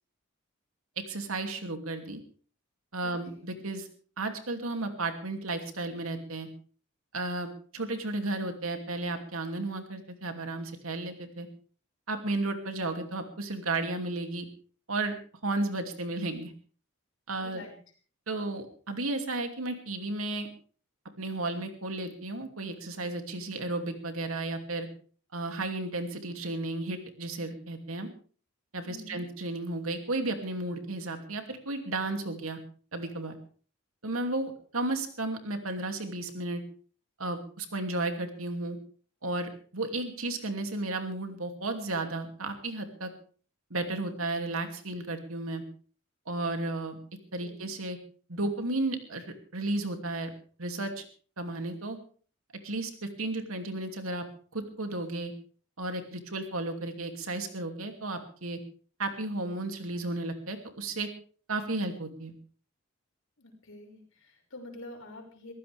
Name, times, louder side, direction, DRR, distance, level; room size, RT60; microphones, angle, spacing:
voice 1, 1.0-2.2 2.9-3.9 4.2-6.5 7.1-11.5 12.1-14.5 14.9-15.1 15.4-16.5 17.3-17.6 18.3-20.5 21.2-24.9 25.3-28.1 28.7-32.6 32.9-33.3 34.0-36.6 37.2-38.8 39.2-43.1 43.7-45.6 46.3-47.0 47.3-48.0 48.3-49.2 49.5-50.3 50.6-51.0 51.4-52.0 52.6-54.2 54.5-55.3 55.8-58.6 59.0-61.1 61.5-62.3, right 2 dB, 85° right, 6 dB, 2.7 m, -33 dB
voice 2, 3.0-3.6 17.4-17.8 28.8-29.2 47.4-47.7 63.4-65.5, left 1 dB, 65° left, 2 dB, 6.0 m, -47 dB
22.5 x 15.0 x 3.5 m, 0.42 s
head